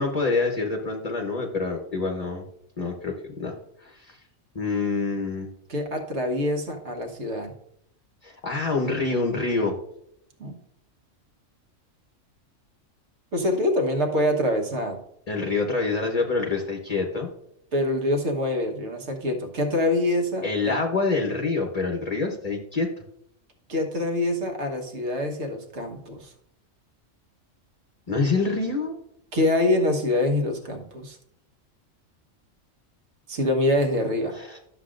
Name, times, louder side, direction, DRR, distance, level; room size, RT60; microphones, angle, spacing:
voice 1, 0.0-2.4 2.8-3.5 3.8-4.2 4.5-5.5 8.2-9.7 15.3-17.3 20.4-22.9 28.1-29.0 34.3-34.6, left 3 dB, 35° left, 2 dB, 0.9 m, -26 dB
voice 2, 5.7-7.5 10.4-10.5 13.3-15.0 17.7-20.8 23.7-26.3 29.3-31.2 33.3-34.4, left 1 dB, 60° right, 3 dB, 1.5 m, -25 dB
11.5 x 7.0 x 2.5 m, 0.74 s
omnidirectional pair, 1.4 m